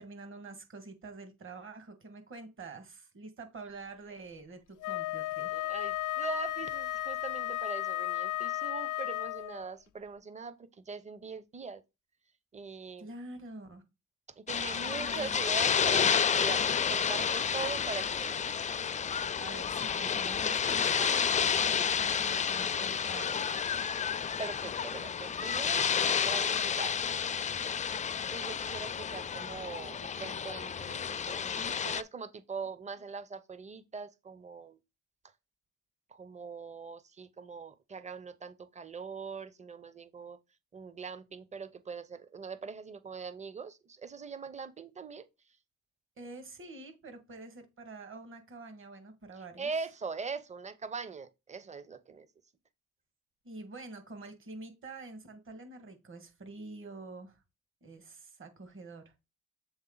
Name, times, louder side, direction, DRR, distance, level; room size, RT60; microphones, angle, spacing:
voice 1, 0.0-5.6 13.0-13.8 14.8-15.5 19.4-23.6 46.2-49.7 53.4-57.4 57.8-59.1, right 3 dB, 40° right, 1.9 m, -47 dB
Wind instrument woodwind instrument, 4.8-9.7, left 15 dB, 85° left, 0.5 m, -34 dB
voice 2, 5.5-11.8 12.5-13.1 14.4-18.7 24.4-27.0 28.3-34.8 36.1-40.4 40.7-45.3 49.6-52.3, right 5 dB, 25° right, 0.7 m, -42 dB
sound 1, 14.5-32.0, left 7 dB, 25° left, 0.4 m, -30 dB
7.1 x 3.7 x 3.9 m
cardioid pair, 90°, 30 cm